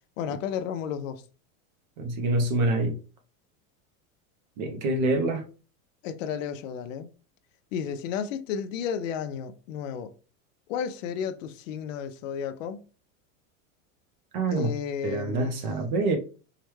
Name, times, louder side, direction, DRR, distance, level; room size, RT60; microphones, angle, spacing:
voice 1, 0.2-1.2 6.0-7.1 7.7-10.1 10.7-12.8 14.5-15.6, left 7 dB, 65° left, 0.6 m, -32 dB
voice 2, 2.0-3.0 4.6-5.4 14.3-14.7 15.0-16.2, right 2 dB, 35° right, 0.4 m, -26 dB
4.7 x 2.2 x 3.1 m
supercardioid pair, 175°, 41 cm